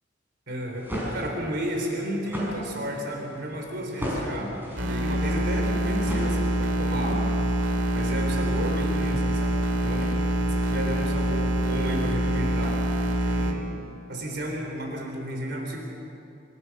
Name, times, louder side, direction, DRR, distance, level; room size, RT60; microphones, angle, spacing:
voice 1, 0.5-4.5 4.8-7.3 7.9-12.8 13.2-13.8 14.1-15.8, equal, 60° right, 1 dB, 3.6 m, -32 dB
sound 1, 0.6-6.9, equal, 10° right, 6.2 m, -36 dB
sound 2, 4.8-13.5, equal, 80° right, 2.5 m, -25 dB
25.0 x 16.5 x 7.0 m, 2.7 s
head